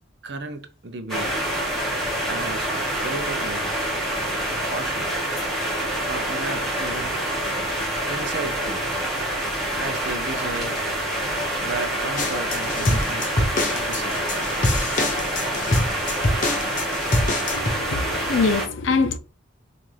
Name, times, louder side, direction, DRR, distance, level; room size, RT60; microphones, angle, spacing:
voice 1, 0.2-1.4 2.3-2.7 3.0-3.8 4.6-5.1 6.1-7.2 8.1-8.9 9.7-10.8 11.6-14.1, right 3 dB, 55° right, 0.6 m, -34 dB
sound 1, 1.1-18.7, right 1 dB, ahead, 1.5 m, -26 dB
sound 2, 12.2-17.7, left 2 dB, 40° left, 0.8 m, -25 dB
voice 2, 17.5-19.2, left 4 dB, 75° left, 0.6 m, -23 dB
6.2 x 2.5 x 3.3 m
head